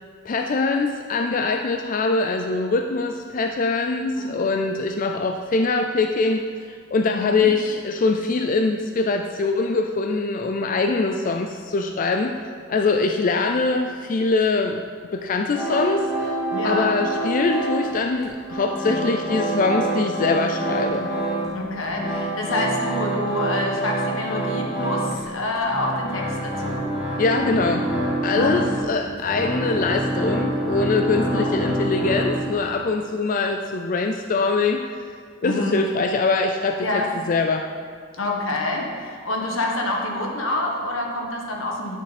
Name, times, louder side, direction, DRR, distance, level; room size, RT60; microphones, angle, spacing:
voice 1, 0.3-12.3 12.7-14.8 15.1-16.4 16.6-21.1 27.2-27.9 28.2-35.0 35.4-37.0 37.3-37.6, left 3 dB, 40° left, 4 dB, 0.4 m, -23 dB
voice 2, 7.0-7.5 16.5-16.9 21.5-26.9 28.3-28.5 31.3-31.5 35.4-35.8 36.8-37.1 38.2-42.0, left 1 dB, 85° left, 0 dB, 1.5 m, -27 dB
sound 1, 15.5-18.0 18.2-21.6 21.8-32.7, right 1 dB, 5° right, 2.0 m, -26 dB
10.5 x 6.5 x 4.2 m, 2.2 s
head